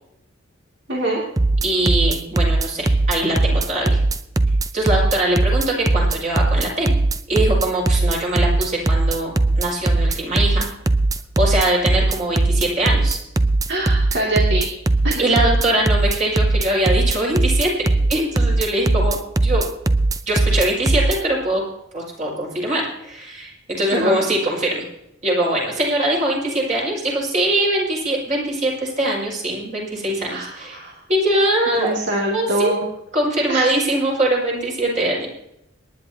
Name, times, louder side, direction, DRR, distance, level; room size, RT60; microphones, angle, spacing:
sound 1, 1.4-21.2, right 2 dB, 15° right, 0.5 m, -18 dB
voice 1, 1.6-4.0 4.7-6.9 7.3-10.7 11.4-13.2 15.2-19.6 20.2-21.6 21.9-24.8 25.2-30.8 31.1-31.9 32.3-32.8 33.1-35.3, right 1 dB, 35° right, -3 dB, 5.6 m, -22 dB
voice 2, 13.7-14.7 15.0-15.2 23.9-24.2 30.3-31.0 31.8-32.9 33.5-33.8, right 1 dB, 55° right, -3 dB, 2.6 m, -24 dB
27.5 x 10.5 x 2.9 m, 0.82 s
head